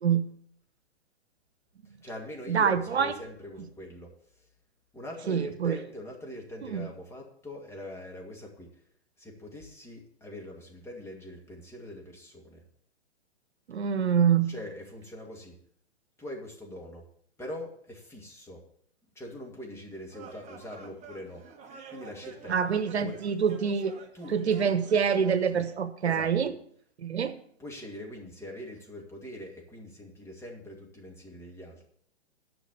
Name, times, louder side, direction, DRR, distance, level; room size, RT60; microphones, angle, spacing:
voice 1, 1.8-4.5 4.9-8.8 9.2-12.6 14.5-15.6 16.2-17.1 17.4-18.6 19.1-21.4 21.9-22.6 23.0-23.2 24.1-24.7 25.2-25.6 26.0-26.3 27.6-31.9, left 1 dB, 10° left, -1 dB, 2.4 m, -43 dB
voice 2, 2.5-3.1 5.3-5.8 6.7-6.9 13.7-14.5 22.5-24.0 24.3-26.5 27.0-27.3, right 7 dB, 80° right, 12 dB, 1.0 m, -26 dB
sound 1, 20.1-25.8, right 5 dB, 20° right, 1.4 m, -49 dB
10.5 x 6.0 x 8.0 m, 0.64 s
hypercardioid pair, 125°, 33 cm